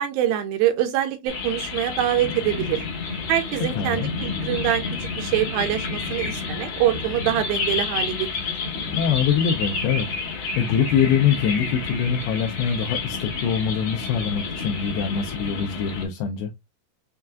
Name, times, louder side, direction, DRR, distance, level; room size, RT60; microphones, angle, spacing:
voice 1, 0.0-2.8 3.3-4.8 5.2-8.6, right 11 dB, 80° right, 2.2 m, -24 dB
sound 1, 1.3-16.1, left 4 dB, 60° left, 2.4 m, -30 dB
voice 2, 3.8-4.1 8.9-10.1 10.6-16.5, left 7 dB, 80° left, 2.4 m, -23 dB
6.6 x 2.4 x 2.3 m
omnidirectional pair, 4.7 m